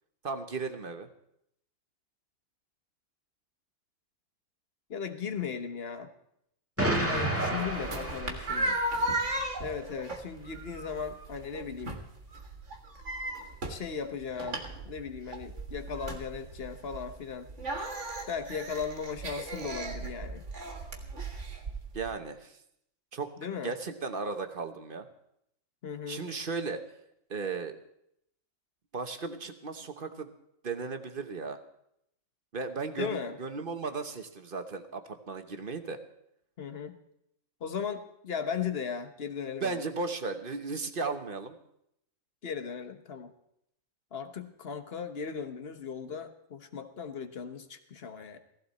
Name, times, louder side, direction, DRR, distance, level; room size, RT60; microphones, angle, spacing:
voice 1, 0.2-1.1 7.8-8.1 21.9-22.6 23.1-23.3 23.6-25.1 26.1-26.8 27.3-27.8 28.9-30.3 30.6-31.6 32.5-36.0 39.6-41.6, right 4 dB, 45° right, 8 dB, 1.1 m, -35 dB
voice 2, 4.9-6.1 6.8-8.8 9.6-12.0 13.7-17.5 18.3-20.4 23.4-23.7 25.8-26.2 33.0-33.4 36.6-37.0 37.6-39.8 42.4-43.3 44.1-48.4, left 6 dB, 50° left, 9 dB, 1.3 m, -37 dB
Explosion, 6.8-9.0, right 1 dB, 10° right, 1.7 m, -31 dB
sound 1, 7.2-22.1, right 1 dB, 60° right, 2.0 m, -36 dB
16.0 x 15.5 x 4.2 m, 0.76 s
omnidirectional pair, 1.4 m